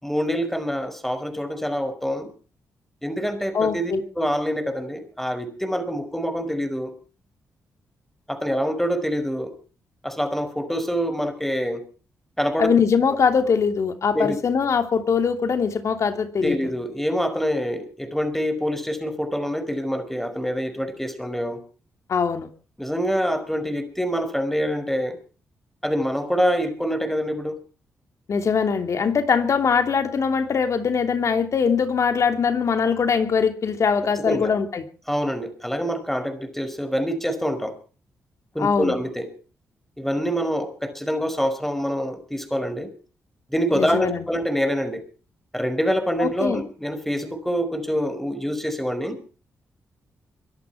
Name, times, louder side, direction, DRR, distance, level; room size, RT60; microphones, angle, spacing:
voice 1, 0.0-2.3 3.0-6.9 8.3-9.5 10.0-11.8 12.4-12.7 14.1-14.4 16.4-21.6 22.8-25.2 25.8-27.6 34.3-34.5 35.1-37.8 38.5-39.3 40.0-42.9 43.5-45.0 45.5-49.2, equal, 5° left, 11 dB, 5.1 m, -25 dB
voice 2, 3.5-4.0 12.6-16.6 22.1-22.5 28.3-34.8 38.6-38.9 43.7-44.3 46.2-46.6, left 6 dB, 60° left, 7 dB, 2.8 m, -22 dB
24.0 x 11.0 x 4.7 m, 0.37 s
supercardioid pair, 55°, 6 cm